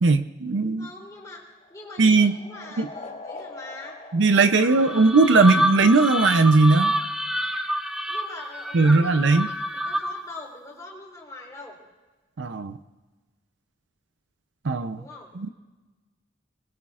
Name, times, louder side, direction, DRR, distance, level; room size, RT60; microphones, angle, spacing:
voice 1, 0.0-0.9 2.0-2.4 2.8-2.9 4.1-6.9 8.7-9.5 12.4-12.8 14.6-15.0 15.4-15.5, right 3 dB, 65° right, 9 dB, 0.6 m, -18 dB
voice 2, 0.5-4.0 4.4-5.0 8.1-11.8 15.0-15.3, left 2 dB, 20° left, -2 dB, 3.7 m, -43 dB
sound 1, 0.8-5.6, left 3 dB, 40° left, 1.7 m, -43 dB
sound 2, 4.6-10.3, equal, 5° right, 0.5 m, -28 dB
26.0 x 21.0 x 2.5 m, 1.3 s
head